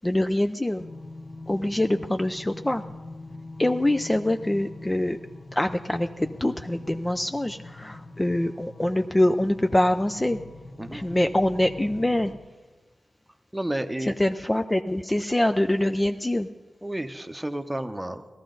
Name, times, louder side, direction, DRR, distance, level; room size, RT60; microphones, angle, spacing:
voice 1, 0.0-0.8 1.5-2.8 3.6-5.2 5.5-10.4 10.9-12.3 14.2-16.5, left 1 dB, 20° left, 7 dB, 0.4 m, -24 dB
sound 1, 0.8-12.4, left 2 dB, 45° left, 1.1 m, -43 dB
voice 2, 10.8-11.2 13.5-14.1 16.8-18.3, right 1 dB, 15° right, 8 dB, 0.9 m, -31 dB
16.5 x 13.0 x 3.9 m, 1.3 s
cardioid pair, 60°, 0 cm